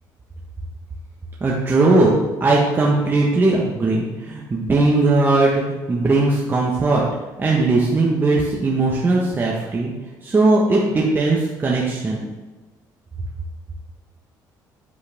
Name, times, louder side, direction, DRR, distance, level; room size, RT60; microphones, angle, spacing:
voice 1, 1.4-5.6 5.9-7.1 7.4-9.9 10.2-12.2, right 2 dB, 25° right, -3 dB, 1.4 m, -18 dB
8.8 x 7.8 x 3.6 m, 1.2 s
cardioid pair, 105°, 8 cm